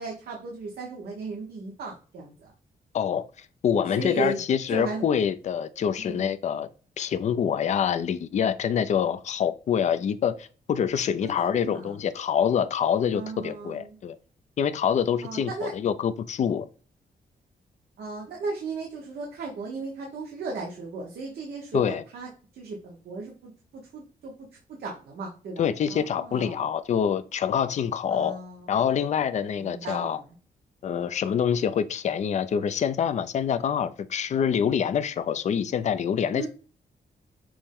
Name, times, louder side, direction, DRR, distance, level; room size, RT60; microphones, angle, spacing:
voice 1, 0.0-2.5 3.9-4.4 4.7-5.0 6.0-6.2 11.4-12.0 13.1-14.0 15.2-15.7 18.0-22.3 22.5-24.3 24.7-26.6 28.1-28.7 29.6-30.2 36.3-36.5, right 3 dB, 85° right, 1.0 m, -36 dB
voice 2, 2.9-6.7 7.0-14.2 14.6-16.6 21.7-22.0 25.6-28.4 28.7-30.2 30.8-36.5, left 8 dB, 45° left, 0.4 m, -26 dB
6.0 x 2.1 x 3.5 m
wide cardioid pair, 160°, 16 cm